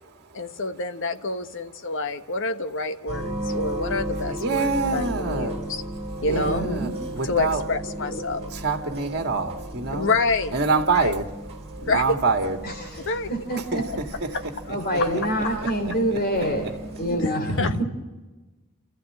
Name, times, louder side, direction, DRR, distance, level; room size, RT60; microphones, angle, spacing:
voice 1, 0.3-5.8 6.2-6.7 7.2-8.5 9.9-10.6 10.9-11.1 11.8-12.2 13.0-13.3 14.3-14.4 15.0-15.1 17.1-17.8, left 3 dB, 60° left, 1.4 m, -28 dB
sound 1, 3.1-17.2, right 1 dB, 30° right, 3.8 m, -35 dB
voice 2, 4.4-5.6 6.3-7.6 8.5-10.1 10.5-11.3 11.8-12.6 13.6-14.3, right 4 dB, 50° right, 2.1 m, -25 dB
voice 3, 6.2-7.3 8.0-8.2 12.6-13.8 14.7-17.8, equal, 45° left, 3.2 m, -27 dB
30.0 x 14.5 x 8.6 m
head